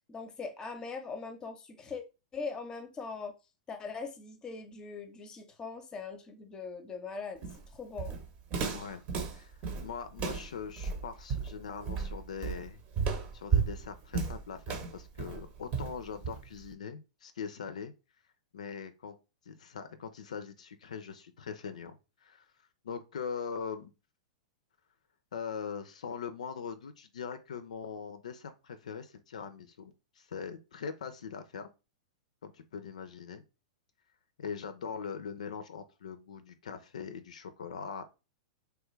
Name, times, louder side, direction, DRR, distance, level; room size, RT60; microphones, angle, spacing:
voice 1, 0.1-2.0 2.3-3.3 3.7-7.5 7.7-8.2, left 4 dB, 20° left, 0.6 m, -41 dB
Walk footsteps, 7.4-16.7, right 6 dB, 35° right, 0.7 m, -34 dB
voice 2, 8.6-9.0 9.3-12.8 13.3-17.9 18.5-19.2 19.5-22.0 22.2-22.5 22.8-23.9 25.3-31.7 32.4-33.4 34.4-38.0, left 6 dB, 75° left, 0.4 m, -41 dB
3.1 x 2.3 x 3.0 m
hypercardioid pair, 110°, 4 cm